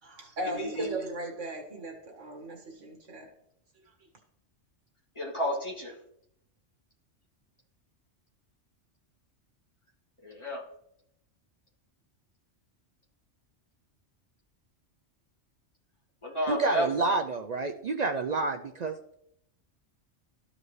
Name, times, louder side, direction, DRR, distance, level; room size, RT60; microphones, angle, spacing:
voice 1, 0.0-3.3, right 1 dB, 90° right, 3 dB, 2.0 m, -37 dB
voice 2, 0.5-0.9 5.2-5.9 10.2-10.6 16.2-16.9, equal, 25° left, -3 dB, 2.3 m, -31 dB
voice 3, 16.5-19.1, right 3 dB, 60° right, 5 dB, 0.4 m, -29 dB
13.5 x 5.0 x 3.2 m, 0.72 s
omnidirectional pair, 1.2 m